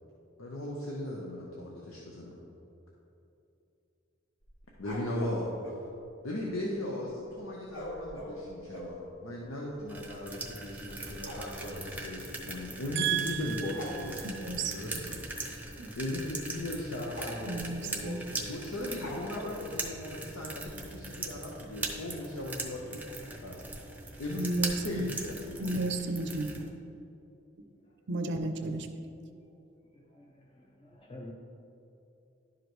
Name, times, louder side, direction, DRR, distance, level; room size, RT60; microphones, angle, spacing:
voice 1, 0.4-2.4 4.8-5.5 6.2-15.2 16.0-23.0 23.4-23.6 24.2-24.4 24.8-25.6, left 1 dB, 85° left, -3 dB, 0.9 m, -38 dB
sound 1, 4.4-5.8 7.7-9.0 9.7-9.8 10.0-10.2 10.5-11.9 13.0-13.3 13.7-14.0 15.4-15.6 16.0-16.1 16.6-16.8 17.1-17.6 19.0-19.6, equal, 65° left, 1.3 m, -43 dB
sound 2, 9.9-26.7, right 2 dB, 10° right, 0.7 m, -41 dB
voice 2, 13.0-15.0 15.8-15.9 17.5-18.2 24.4-25.1 25.6-26.7 28.1-28.9, right 3 dB, 60° right, 6 dB, 0.5 m, -33 dB
voice 3, 30.1-31.3, left 1 dB, 30° left, -2 dB, 0.6 m, -49 dB
11.0 x 5.0 x 3.1 m, 2.8 s
head